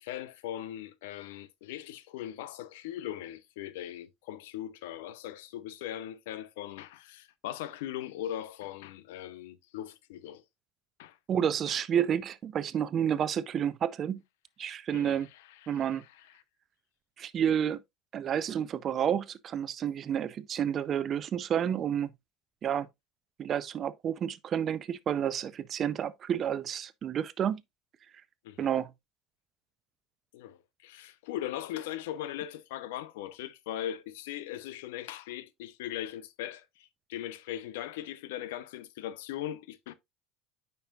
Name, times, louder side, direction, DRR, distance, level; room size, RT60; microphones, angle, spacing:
voice 1, 0.0-10.4 11.0-11.2 11.7-11.8 14.9-16.3 28.4-28.7 30.3-39.9, left 12 dB, 85° left, 0.7 m, -40 dB
voice 2, 11.3-14.2 14.6-15.3 15.7-16.0 17.2-17.8 18.1-22.1 22.6-22.9 23.4-27.6 28.6-28.9, right 9 dB, 45° right, 0.6 m, -30 dB
8.9 x 5.5 x 2.4 m
supercardioid pair, 90°, 0 cm